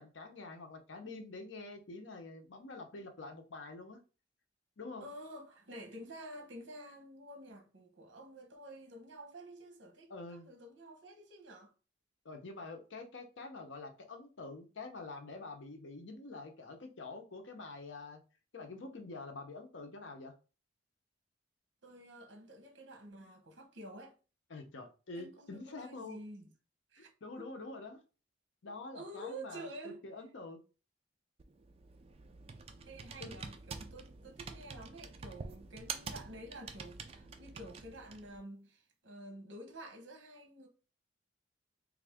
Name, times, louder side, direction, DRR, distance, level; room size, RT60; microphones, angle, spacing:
voice 1, 0.0-4.0 4.8-5.1 10.1-10.5 12.2-18.2 18.5-20.3 24.5-26.2 27.2-28.0 28.6-30.6 33.2-33.4, left 3 dB, 80° left, 0.7 m, -46 dB
voice 2, 5.0-11.7 21.8-24.1 25.2-26.5 26.9-27.1 27.4-27.5 28.6-30.0 32.9-40.7, right 1 dB, 70° right, 0.9 m, -50 dB
Computer keyboard, 31.4-38.4, right 5 dB, 30° right, 0.3 m, -47 dB
3.3 x 2.4 x 3.4 m
head